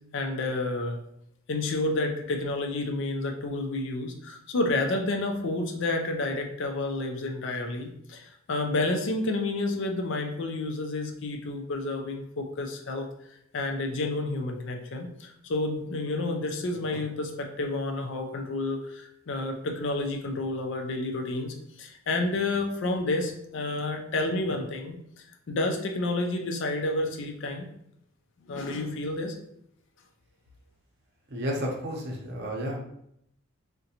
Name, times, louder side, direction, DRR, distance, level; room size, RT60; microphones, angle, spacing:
voice 1, 0.1-1.0 1.5-13.1 13.5-25.0 25.5-27.7 28.5-29.3, left 2 dB, 60° left, 4 dB, 0.5 m, -30 dB
voice 2, 31.3-32.8, equal, 50° right, -1 dB, 0.7 m, -31 dB
3.7 x 2.2 x 2.8 m, 0.74 s
head